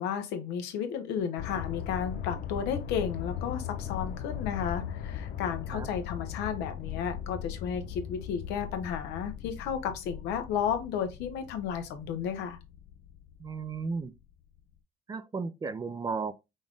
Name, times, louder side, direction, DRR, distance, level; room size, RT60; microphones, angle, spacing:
voice 1, 0.0-12.6, left 8 dB, 90° left, 1.0 m, -33 dB
sound 1, 1.4-14.1 14.6-14.7, left 9 dB, 70° left, 0.6 m, -39 dB
voice 2, 13.4-14.1 15.1-16.3, right 4 dB, 20° right, 0.4 m, -34 dB
5.2 x 2.5 x 3.5 m
cardioid pair, 110°, 17 cm